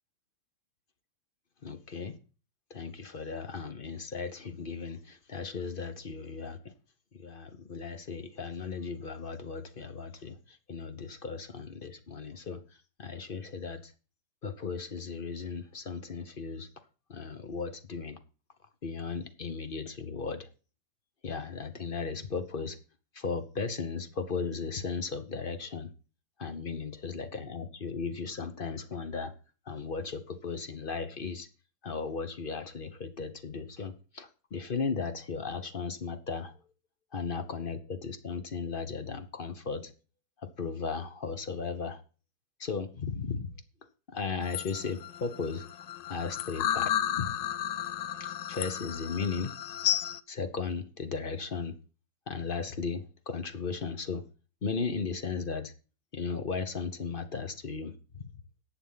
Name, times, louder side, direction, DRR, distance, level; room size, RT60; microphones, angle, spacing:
voice 1, 1.6-2.2 2.7-6.7 7.1-12.6 13.0-13.9 14.4-16.7 17.1-18.2 18.8-20.5 21.2-22.8 23.1-25.9 26.4-29.3 29.7-31.5 31.8-36.5 37.1-39.9 40.4-42.0 42.6-43.5 44.1-45.7 46.1-47.3 48.2-49.5 50.3-51.7 52.3-54.2 54.6-55.7 56.1-58.3, left 5 dB, 40° left, 0.9 m, -36 dB
sound 1, 44.4-50.2, left 11 dB, 70° left, 1.3 m, -33 dB
11.0 x 7.4 x 5.7 m
omnidirectional pair, 2.2 m